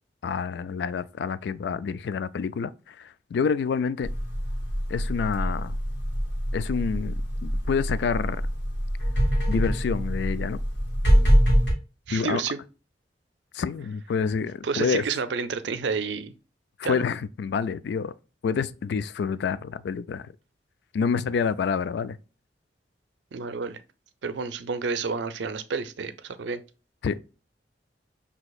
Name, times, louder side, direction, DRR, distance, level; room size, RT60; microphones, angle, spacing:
voice 1, 0.2-4.1 4.9-5.8 6.5-8.4 9.5-10.6 12.1-12.4 13.5-15.0 16.8-18.1 18.4-20.3 20.9-22.2 27.0-27.2, left 6 dB, 65° left, 0.3 m, -28 dB
sound 1, 4.0-11.7, equal, 90° left, 1.6 m, -24 dB
voice 2, 12.1-12.6 14.6-16.3 16.8-17.1 23.3-23.8 24.2-26.6, right 5 dB, 80° right, 0.5 m, -30 dB
6.1 x 2.8 x 2.3 m
head